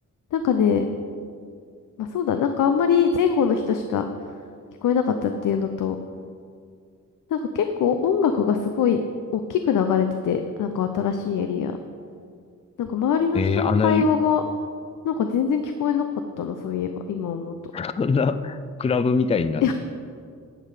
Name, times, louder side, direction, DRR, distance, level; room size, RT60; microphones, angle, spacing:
voice 1, 0.3-0.8 2.0-4.0 4.8-6.0 7.3-9.0 9.3-11.8 12.8-14.4 15.0-16.1 16.4-17.5 19.6-19.7, left 7 dB, 85° left, 7 dB, 0.6 m, -23 dB
voice 2, 13.3-14.1 17.7-19.6, left 5 dB, 20° left, 12 dB, 0.4 m, -23 dB
11.0 x 7.6 x 4.9 m, 2.2 s
wide cardioid pair, 120°, 31 cm